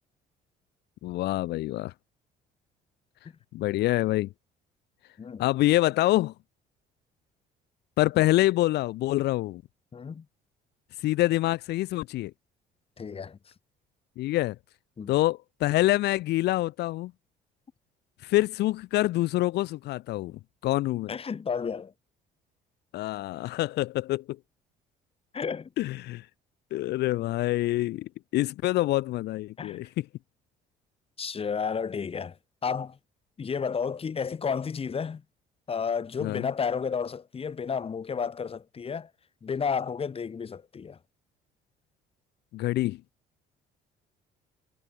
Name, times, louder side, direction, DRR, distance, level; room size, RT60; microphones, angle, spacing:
voice 1, 1.0-1.9 3.5-4.3 5.4-6.3 8.0-9.6 11.0-12.3 14.2-14.6 15.1-17.1 18.2-21.1 22.9-24.4 25.8-26.3 26.7-30.1 36.2-36.5 42.5-43.0, left 16 dB, 80° left, 2.6 m, -26 dB
voice 2, 9.9-10.2 13.0-13.4 15.0-15.1 21.1-21.9 25.3-25.7 29.6-29.8 31.2-32.4 32.6-33.0 33.4-35.2 35.7-39.1 39.4-41.0, left 6 dB, 35° left, 5.6 m, -31 dB
cardioid pair, 110°, 17 cm